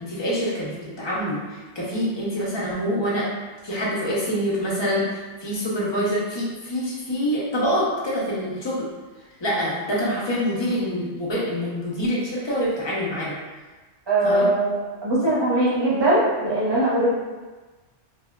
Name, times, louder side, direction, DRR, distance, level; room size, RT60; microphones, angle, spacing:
voice 1, 0.0-3.3 3.6-8.9 9.4-13.4 14.2-14.5, equal, 30° left, -7 dB, 0.5 m, -26 dB
voice 2, 14.1-17.1, right 1 dB, 30° right, -7 dB, 0.6 m, -21 dB
2.8 x 2.3 x 2.2 m, 1.3 s
omnidirectional pair, 1.2 m